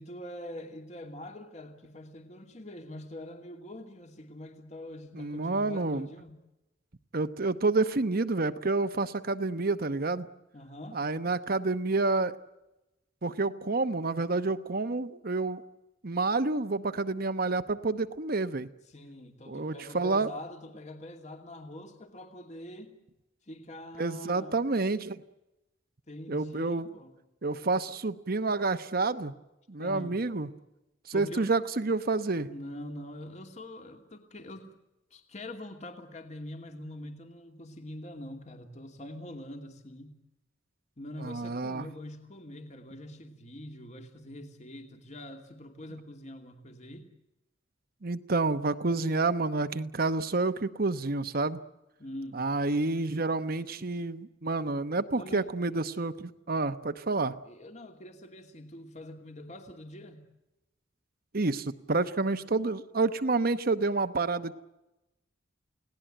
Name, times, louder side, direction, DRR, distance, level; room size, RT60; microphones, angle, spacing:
voice 1, 0.0-6.4 10.5-11.0 18.9-23.0 23.4-24.6 26.1-27.2 29.8-30.2 31.1-31.5 32.5-34.7 35.1-40.2 41.0-47.1 52.0-52.4 53.7-53.8 55.1-55.5 57.2-60.3, left 1 dB, 35° left, 5 dB, 2.7 m, -44 dB
voice 2, 5.2-6.1 7.1-10.3 10.9-12.3 13.2-15.6 16.0-18.7 19.5-20.3 24.0-25.2 26.3-26.9 27.4-29.3 29.7-30.5 31.1-32.5 41.2-41.9 48.0-51.6 52.3-57.3 61.3-64.5, right 3 dB, 50° right, 10 dB, 1.0 m, -29 dB
29.5 x 18.5 x 9.1 m, 0.97 s
head